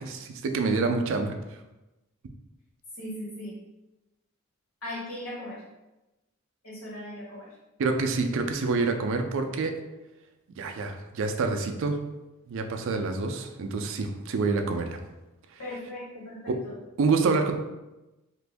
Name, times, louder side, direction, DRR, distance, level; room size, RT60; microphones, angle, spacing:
voice 1, 0.0-1.3 7.8-9.7 10.6-12.0 12.5-15.0 16.5-16.6 17.0-17.5, right 4 dB, 60° right, 6 dB, 0.4 m, -27 dB
voice 2, 2.9-3.5 4.8-5.6 6.6-7.5 15.6-16.7, left 1 dB, 80° left, -6 dB, 1.4 m, -38 dB
2.9 x 2.5 x 3.4 m, 1.0 s
head